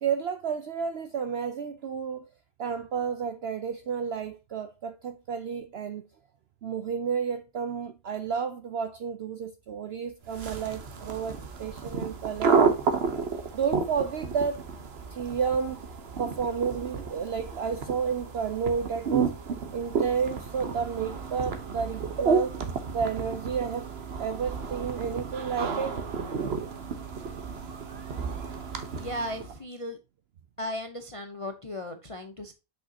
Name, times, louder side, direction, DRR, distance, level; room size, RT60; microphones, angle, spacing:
voice 1, 0.0-2.3 2.6-6.1 6.6-12.7 13.5-14.6 15.1-15.8 16.2-19.3 19.7-22.6 22.9-23.9 24.2-26.0, right 6 dB, 65° right, 0.6 m, -31 dB
sound 1, 10.3-29.6, right 5 dB, 50° right, 1.1 m, -31 dB
voice 2, 29.0-30.0 30.6-32.5, left 1 dB, 40° left, 0.4 m, -36 dB
6.5 x 5.5 x 2.7 m
omnidirectional pair, 1.6 m